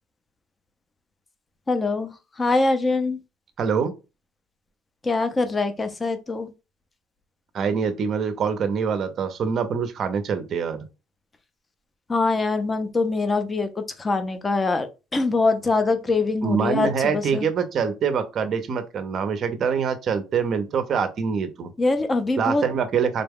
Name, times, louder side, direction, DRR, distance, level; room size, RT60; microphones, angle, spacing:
voice 1, 1.7-2.1 2.4-3.2 5.0-6.5 12.1-14.9 15.1-17.4 21.8-22.6, left 3 dB, 15° left, 0.5 m, -23 dB
voice 2, 3.6-3.9 7.5-10.9 16.4-21.7 22.4-23.2, right 6 dB, 35° right, 0.6 m, -24 dB
3.8 x 2.2 x 3.5 m
cardioid pair, 160°, 0 cm